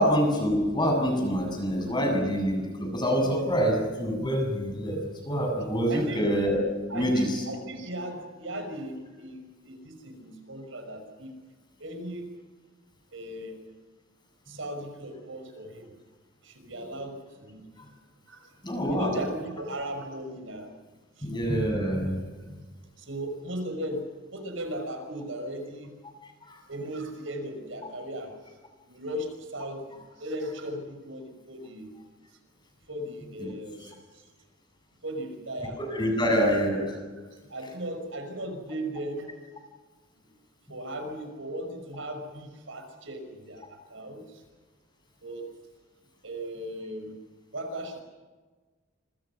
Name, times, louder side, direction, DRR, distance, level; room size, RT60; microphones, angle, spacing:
voice 1, 0.0-6.6 6.9-7.4 18.6-19.2 21.2-22.2 35.8-36.8, equal, 25° left, 3 dB, 7.5 m, -26 dB
voice 2, 5.9-6.2 6.9-11.3 11.8-12.3 13.1-13.6 14.5-15.9 16.4-17.7 18.3-18.5 18.9-20.7 21.2-21.3 23.0-24.0 24.3-25.9 26.7-28.4 28.9-31.9 32.9-34.3 35.0-35.8 36.3-36.6 37.5-39.3 40.7-44.4 45.2-45.5 46.2-47.2 47.5-48.0, right 1 dB, 75° right, 6 dB, 5.9 m, -37 dB
27.5 x 25.5 x 6.2 m, 1.4 s
head